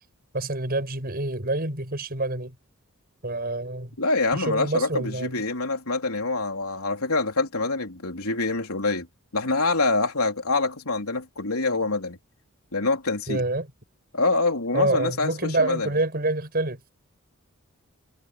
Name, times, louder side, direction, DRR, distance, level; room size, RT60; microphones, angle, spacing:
voice 1, 0.3-2.5 3.2-4.0 4.3-5.4 13.3-13.7 14.7-16.8, right 2 dB, 45° right, 6.6 m, -27 dB
voice 2, 4.0-9.1 9.3-12.2 12.7-13.4 14.1-15.9, left 3 dB, 80° left, 3.6 m, -25 dB
head